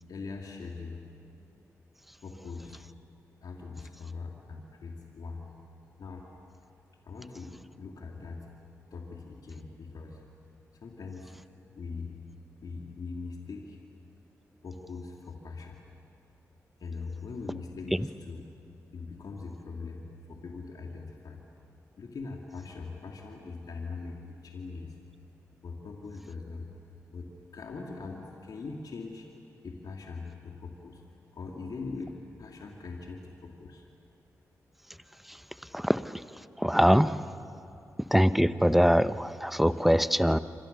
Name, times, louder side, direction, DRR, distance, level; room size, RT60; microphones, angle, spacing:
voice 1, 0.1-1.0 2.2-2.8 3.4-5.5 6.0-6.3 7.0-8.5 8.9-10.2 10.8-11.4 11.7-12.2 12.6-13.8 14.6-15.8 16.8-18.4 18.9-21.4 22.0-25.0 25.6-26.7 27.1-29.3 29.6-31.0 31.3-33.8, left 4 dB, 70° left, 0 dB, 2.6 m, -41 dB
voice 2, 36.6-37.2 38.1-40.4, equal, ahead, 13 dB, 1.0 m, -23 dB
29.5 x 25.5 x 6.9 m, 2.9 s
supercardioid pair, 40°, 7 cm